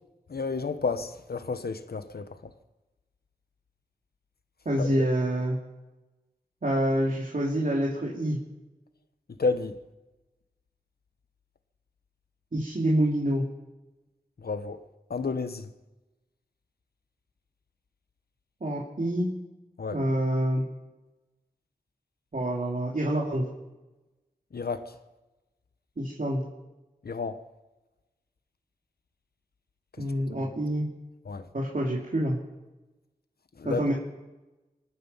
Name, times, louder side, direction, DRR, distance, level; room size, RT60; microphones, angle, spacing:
voice 1, 0.3-2.5 4.8-5.0 9.4-9.8 14.4-14.8 15.1-15.7 19.8-20.0 24.5-25.0 27.0-27.4 30.3-30.5 31.2-31.4 33.6-33.8, left 4 dB, 75° left, 1.1 m, -31 dB
voice 2, 4.6-5.6 6.6-8.4 12.5-13.4 18.6-19.3 19.9-20.6 22.3-23.5 26.0-26.4 30.0-30.9 31.5-32.4 33.6-33.9, right 1 dB, 55° right, 2.8 m, -27 dB
25.5 x 9.4 x 5.6 m
wide cardioid pair, 50°, 16 cm